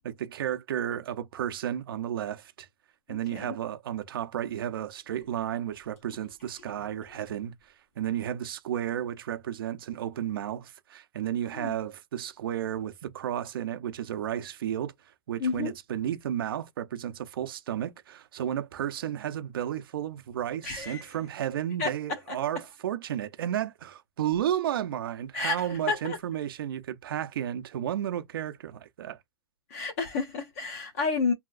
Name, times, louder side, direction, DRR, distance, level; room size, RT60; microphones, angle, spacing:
voice 1, 0.0-2.7 3.1-14.9 15.3-29.2, right 10 dB, 55° right, 0.6 m, -33 dB
voice 2, 3.1-3.6 11.5-11.7 15.4-15.7 20.6-21.0 21.8-22.2 25.3-26.2 29.7-31.3, left 4 dB, 35° left, 0.6 m, -31 dB
3.0 x 2.8 x 2.4 m
hypercardioid pair, 170°, 14 cm